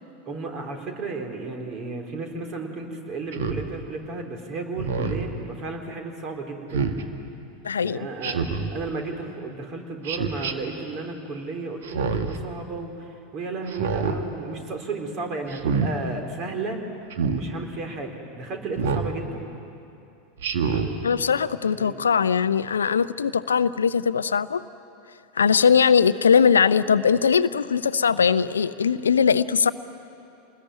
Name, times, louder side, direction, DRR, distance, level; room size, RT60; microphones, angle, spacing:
voice 1, 0.3-6.9 7.8-16.8 17.2-19.5 21.8-22.0, right 3 dB, 40° right, 3 dB, 3.8 m, -34 dB
Speech synthesizer, 3.3-3.6 4.8-5.3 6.7-7.0 8.2-8.7 10.0-10.5 11.8-12.4 13.7-14.2 15.5-15.9 17.1-17.4 18.8-19.1 20.4-20.9, right 5 dB, 65° right, 1.8 m, -26 dB
voice 2, 7.6-8.0 21.0-24.6 25.4-29.7, left 6 dB, 75° left, 15 dB, 0.6 m, -20 dB
27.5 x 20.5 x 9.5 m, 2.7 s
figure-of-eight pair, 85°, 0 cm